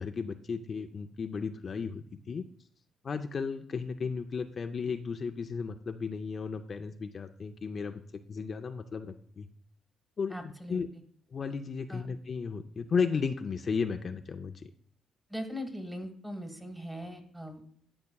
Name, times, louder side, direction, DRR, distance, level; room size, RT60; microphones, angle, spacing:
voice 1, 0.0-2.5 3.0-9.5 10.2-10.9 11.3-14.7, left 5 dB, 45° left, 6 dB, 0.4 m, -34 dB
voice 2, 10.3-10.8 11.9-12.1 15.3-17.8, equal, 10° right, 6 dB, 1.4 m, -40 dB
12.0 x 5.6 x 2.3 m, 0.63 s
cardioid pair, 90°, 0 cm